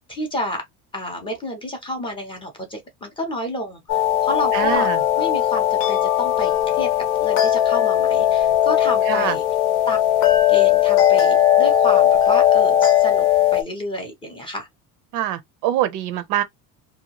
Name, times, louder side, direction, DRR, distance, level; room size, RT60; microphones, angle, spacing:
voice 1, 0.1-0.6 0.9-4.9 5.2-9.4 9.9-10.0 10.5-13.3 13.5-14.7, left 1 dB, 15° left, 0.5 m, -30 dB
sound 1, 3.9-13.6, left 11 dB, 80° left, 0.8 m, -18 dB
voice 2, 4.5-5.0 9.1-9.4 15.1-16.4, right 12 dB, 55° right, 0.5 m, -24 dB
2.7 x 2.2 x 2.8 m
cardioid pair, 180°, 38 cm